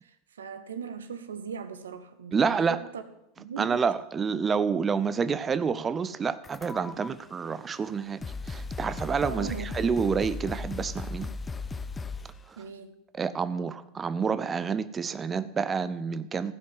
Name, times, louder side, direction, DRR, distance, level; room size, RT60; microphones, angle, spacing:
voice 1, 0.0-3.0 3.4-3.8 9.3-9.7 12.6-12.9, right 7 dB, 85° right, 0.9 m, -39 dB
voice 2, 2.3-2.8 3.6-8.2 8.4-11.3 13.2-16.5, right 6 dB, 25° right, 0.5 m, -28 dB
sound 1, 6.4-7.1 7.8-7.9 8.2-12.4, left 3 dB, 20° left, 0.5 m, -36 dB
15.0 x 5.2 x 7.3 m
hypercardioid pair, 90°, 0 cm